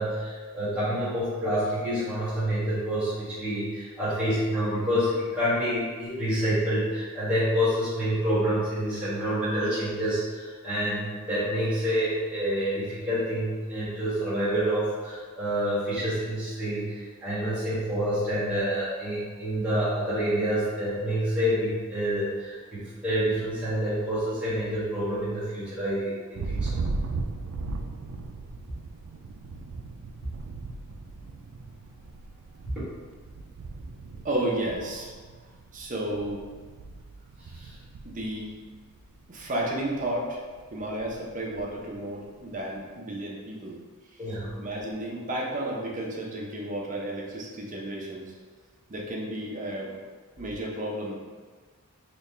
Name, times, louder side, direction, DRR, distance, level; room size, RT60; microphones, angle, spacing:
voice 1, 0.0-26.8 32.7-32.8 37.5-37.7 44.2-44.6, equal, 5° right, -13 dB, 1.3 m, -28 dB
Thunder, 26.3-39.2 39.6-40.1 40.5-41.9, right 3 dB, 65° right, 0.3 m, -38 dB
voice 2, 34.2-35.1 35.7-36.4 38.0-38.6 39.3-40.4 40.7-43.8 44.6-48.3 48.9-50.0 50.4-51.2, right 1 dB, 35° right, -3 dB, 0.6 m, -32 dB
4.1 x 2.3 x 3.2 m, 1.5 s
head